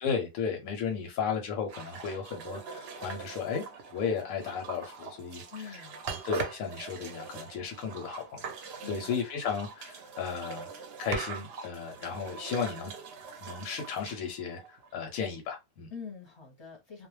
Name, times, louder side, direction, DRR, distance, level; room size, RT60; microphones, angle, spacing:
voice 1, 0.0-3.6 3.9-5.8 6.1-10.7 11.0-12.9 13.4-15.9, left 6 dB, 90° left, 1.0 m, -34 dB
sound 1, 1.7-15.2, right 5 dB, 60° right, 0.7 m, -42 dB
voice 2, 5.5-6.0 8.8-9.1 15.9-17.1, left 6 dB, 25° left, 0.7 m, -44 dB
2.4 x 2.0 x 3.1 m
omnidirectional pair, 1.4 m